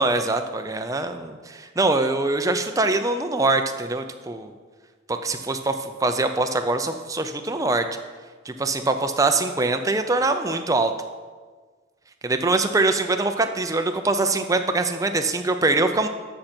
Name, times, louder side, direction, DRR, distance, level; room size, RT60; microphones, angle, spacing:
voice 1, 0.0-4.5 5.1-7.9 8.5-10.9 12.2-16.1, right 2 dB, 15° right, 7 dB, 0.5 m, -23 dB
13.0 x 6.0 x 4.4 m, 1.4 s
head